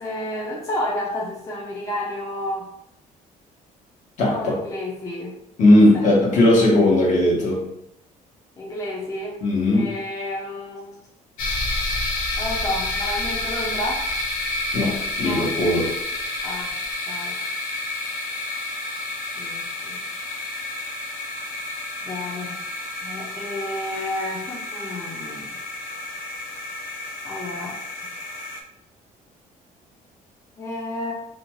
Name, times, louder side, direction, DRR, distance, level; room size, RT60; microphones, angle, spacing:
voice 1, 0.0-2.7 4.2-5.4 5.9-6.5 8.6-9.4 9.7-11.0 12.4-14.0 15.2-15.5 16.4-16.7 17.1-17.4 19.4-20.0 22.0-22.6 23.0-25.6 27.2-27.8 30.6-31.1, left 1 dB, 20° left, -3 dB, 0.4 m, -31 dB
voice 2, 4.2-4.6 5.6-7.6 9.4-9.9 14.7-15.9, left 1 dB, 55° left, -3 dB, 1.0 m, -17 dB
sound 1, 11.4-28.6, left 2 dB, 70° left, 0.5 m, -30 dB
2.5 x 2.2 x 3.0 m, 0.77 s
cardioid pair, 130°, 15 cm